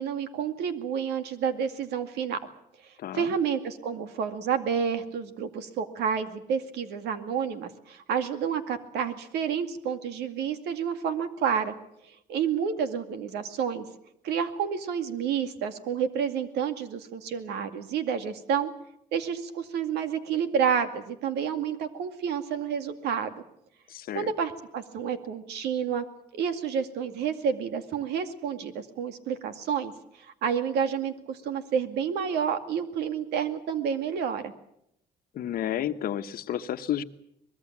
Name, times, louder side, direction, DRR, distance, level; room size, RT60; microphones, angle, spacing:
voice 1, 0.0-2.4 3.1-11.7 12.1-13.9 14.2-18.7 19.1-23.3 24.1-26.0 26.3-29.9 30.2-34.5, right 7 dB, 80° right, 8 dB, 2.3 m, -29 dB
voice 2, 3.0-3.3 23.9-24.3 35.3-37.0, left 10 dB, 60° left, 9 dB, 1.2 m, -31 dB
24.0 x 21.0 x 7.5 m, 0.77 s
cardioid pair, 110°, 17 cm